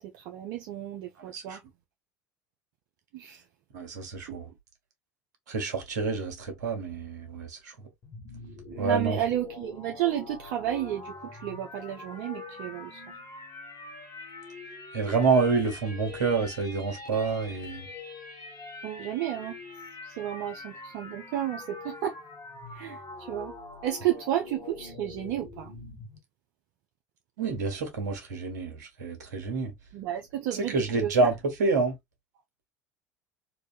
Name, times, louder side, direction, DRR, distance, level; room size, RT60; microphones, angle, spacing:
voice 1, 0.0-1.6 3.1-3.4 4.3-4.4 8.7-13.0 18.8-19.6 20.0-22.2 22.7-23.5 23.8-25.7 29.9-31.3, right 12 dB, 65° right, 0.7 m, -32 dB
voice 2, 3.7-4.5 5.5-7.7 8.8-9.2 14.9-17.8 27.4-29.7 30.7-32.0, right 4 dB, 80° right, 1.3 m, -28 dB
sound 1, 8.0-26.2, left 3 dB, 50° left, 2.2 m, -44 dB
4.1 x 2.6 x 2.4 m
hypercardioid pair, 75°, 9 cm